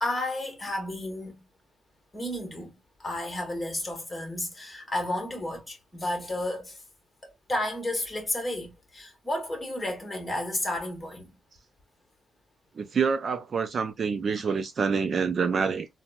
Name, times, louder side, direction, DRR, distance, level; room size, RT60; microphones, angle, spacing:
voice 1, 0.0-1.4 2.1-2.7 3.0-6.8 7.5-11.3, left 1 dB, 15° left, 1.3 m, -32 dB
voice 2, 12.8-15.9, right 5 dB, 40° right, 0.3 m, -27 dB
4.0 x 2.1 x 2.2 m
cardioid pair, 135°, 0 cm